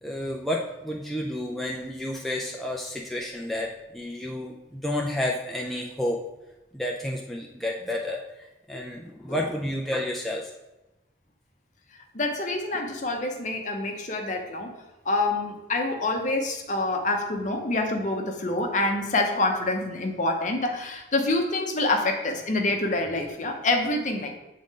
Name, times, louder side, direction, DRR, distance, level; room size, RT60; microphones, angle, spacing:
voice 1, 0.0-6.2 6.7-10.5, left 1 dB, ahead, -2 dB, 0.4 m, -31 dB
voice 2, 12.1-14.7 15.1-24.3, left 2 dB, 40° left, 3 dB, 0.7 m, -26 dB
7.7 x 3.7 x 3.7 m, 1.0 s
head